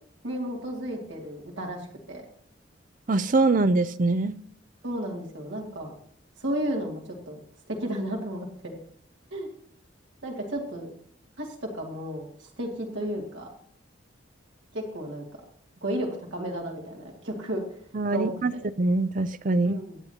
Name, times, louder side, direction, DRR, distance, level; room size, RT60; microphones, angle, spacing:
voice 1, 0.2-2.3 4.8-5.9 6.4-7.4 7.7-8.8 9.3-9.5 10.2-10.9 11.4-13.5 14.7-15.4 15.8-17.6 18.1-18.3 19.7-20.0, right 1 dB, 75° right, -1 dB, 2.5 m, -33 dB
voice 2, 3.1-4.3 17.9-18.5 18.8-19.8, right 3 dB, 45° right, 14 dB, 0.5 m, -23 dB
23.0 x 8.4 x 2.9 m, 0.63 s
head